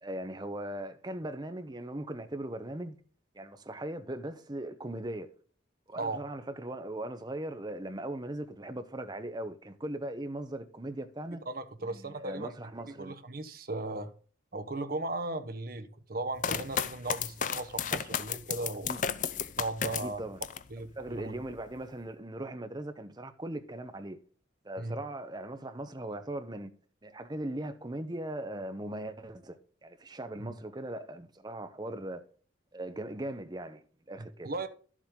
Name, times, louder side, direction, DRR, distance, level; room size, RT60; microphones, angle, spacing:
voice 1, 0.0-3.0 3.3-5.3 5.9-11.4 11.8-13.1 18.9-19.0 20.0-20.4 21.0-24.2 24.6-26.7 27.0-32.2 32.7-34.5, right 1 dB, 20° right, 0.8 m, -39 dB
voice 2, 11.3-12.5 12.9-14.1 14.5-18.9 19.6-20.3 20.7-21.3 24.8-25.0 30.4-30.6 34.2-34.7, right 2 dB, 50° right, 1.0 m, -37 dB
sound 1, 16.4-20.7 21.1-21.8, left 7 dB, 40° left, 0.5 m, -33 dB
11.5 x 7.4 x 3.8 m
head